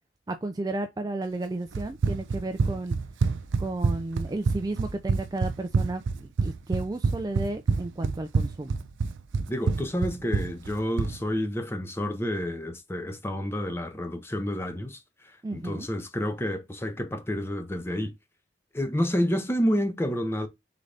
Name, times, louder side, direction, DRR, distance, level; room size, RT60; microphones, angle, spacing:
voice 1, 0.3-3.0 3.6-8.8 15.4-15.9, right 2 dB, 20° right, 0.3 m, -33 dB
Run, 1.7-11.2, right 4 dB, 85° right, 0.5 m, -27 dB
voice 2, 9.5-18.1 18.7-20.5, equal, 15° left, 0.7 m, -29 dB
3.9 x 3.8 x 3.3 m
head